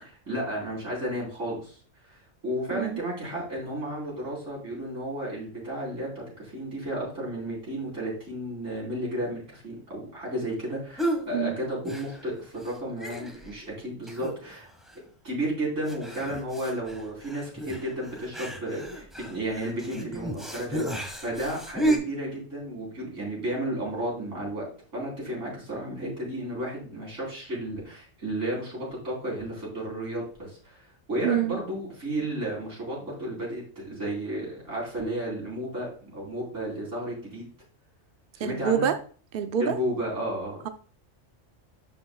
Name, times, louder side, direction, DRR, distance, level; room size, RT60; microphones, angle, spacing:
voice 1, 0.0-1.8 2.0-14.7 15.2-24.6 24.9-37.5 38.3-38.9 39.6-40.6, right 1 dB, 75° right, -4 dB, 4.6 m, -33 dB
sound 1, 11.0-11.3 11.8-12.4 12.6-12.7 13.0-13.6 14.1-14.6 14.9-15.0 15.9-22.0, right 1 dB, ahead, 1.4 m, -32 dB
voice 2, 31.2-31.6 38.4-39.0 39.3-39.8, right 9 dB, 55° right, 8 dB, 0.7 m, -26 dB
12.0 x 5.3 x 2.3 m, 0.42 s
omnidirectional pair, 1.3 m